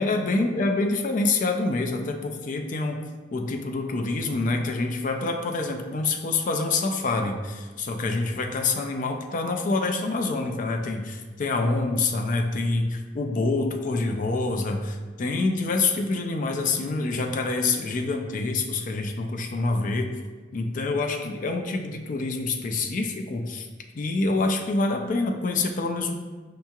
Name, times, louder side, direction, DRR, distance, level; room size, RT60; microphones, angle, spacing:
voice 1, 0.0-3.0 3.3-20.1 20.5-23.7 23.9-26.1, left 3 dB, 45° left, 3 dB, 0.4 m, -26 dB
5.3 x 2.8 x 2.3 m, 1.3 s
head